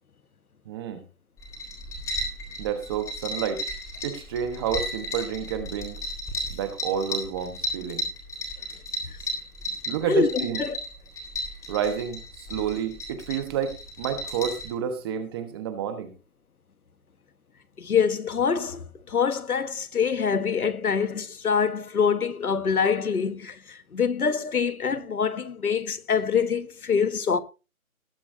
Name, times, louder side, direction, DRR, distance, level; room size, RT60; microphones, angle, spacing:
voice 1, 0.7-1.0 2.6-3.7 4.0-6.0 6.5-8.1 9.9-10.6 11.7-16.1, right 8 dB, 15° right, 1.1 m, -30 dB
sound 1, 1.4-14.7, left 1 dB, 5° left, 3.6 m, -34 dB
voice 2, 10.1-10.8 17.8-27.4, left 6 dB, 90° left, 1.5 m, -25 dB
19.5 x 8.3 x 2.7 m
hypercardioid pair, 160°, 43 cm